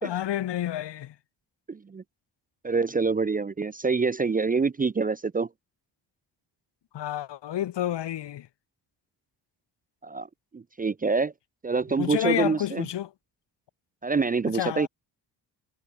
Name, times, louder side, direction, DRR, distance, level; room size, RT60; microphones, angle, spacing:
voice 1, 0.0-1.1 6.9-8.5 12.0-13.1 14.5-14.9, left 12 dB, 80° left, 3.7 m, -29 dB
voice 2, 1.7-2.0 2.6-5.5 10.0-10.3 10.5-11.3 11.6-12.9 14.0-14.9, right 4 dB, 20° right, 0.5 m, -26 dB
cardioid pair, 80°, 42 cm